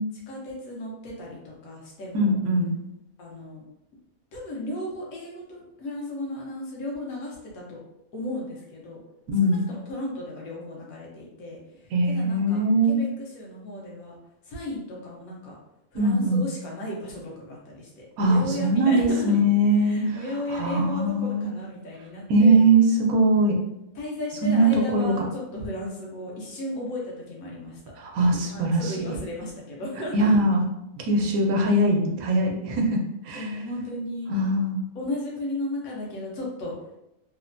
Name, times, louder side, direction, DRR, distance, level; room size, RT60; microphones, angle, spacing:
voice 1, 0.3-2.4 3.2-3.6 4.3-7.8 8.1-9.0 9.4-14.2 14.5-15.5 15.9-19.3 19.8-22.6 23.9-27.8 28.5-30.1 33.4-34.3 34.9-36.7, left 1 dB, 85° left, -3 dB, 1.2 m, -35 dB
voice 2, 2.1-2.7 9.3-9.6 11.9-13.0 15.9-16.4 18.2-20.2 20.5-21.5 22.3-23.6 24.4-25.3 28.0-28.8 30.1-30.6 31.0-33.0 33.2-33.5 34.3-34.8, right 1 dB, 85° right, 1 dB, 1.1 m, -21 dB
3.1 x 2.1 x 2.5 m, 0.87 s
omnidirectional pair, 1.5 m